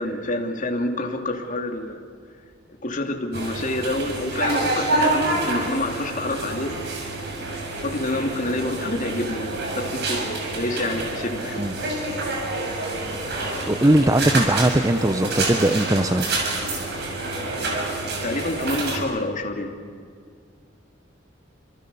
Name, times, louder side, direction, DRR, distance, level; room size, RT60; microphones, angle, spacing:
voice 1, 0.0-2.0 2.8-6.8 7.4-11.7 17.4-17.9 18.2-19.7, left 1 dB, 45° left, 3 dB, 2.9 m, -28 dB
sound 1, 3.3-19.0, right 2 dB, 60° right, 6.4 m, -27 dB
voice 2, 13.7-16.3, right 1 dB, 20° right, 8 dB, 0.8 m, -19 dB
29.5 x 26.5 x 7.0 m, 2.2 s
head